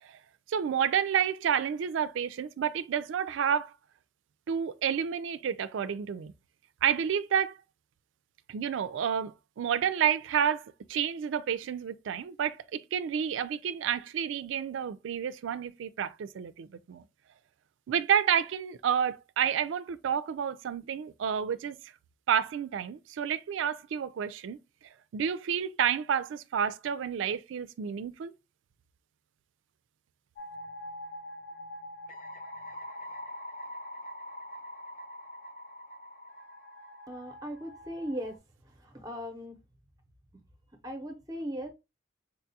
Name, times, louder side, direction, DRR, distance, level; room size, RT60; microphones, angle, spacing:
voice 1, 0.5-3.7 4.5-6.3 6.8-7.6 8.5-17.0 17.9-21.8 22.3-24.6 25.1-28.3, right 8 dB, 75° right, 0.3 m, -30 dB
sound 1, 30.4-38.4, left 1 dB, 45° left, 0.7 m, -44 dB
voice 2, 37.1-38.4 38.9-39.6 40.8-41.7, equal, 20° right, 0.7 m, -37 dB
4.2 x 2.3 x 2.7 m
head